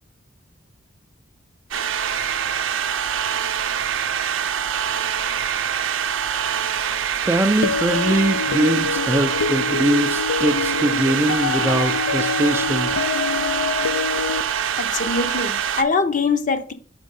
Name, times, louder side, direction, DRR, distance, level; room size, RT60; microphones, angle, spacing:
sound 1, 1.7-15.8, right 8 dB, 65° right, 0.6 m, -24 dB
voice 1, 7.2-12.9, right 1 dB, 10° right, 0.3 m, -22 dB
sound 2, 7.6-14.4, left 6 dB, 80° left, 0.3 m, -26 dB
voice 2, 14.7-16.7, left 4 dB, 40° left, 0.6 m, -23 dB
5.2 x 4.6 x 5.2 m
head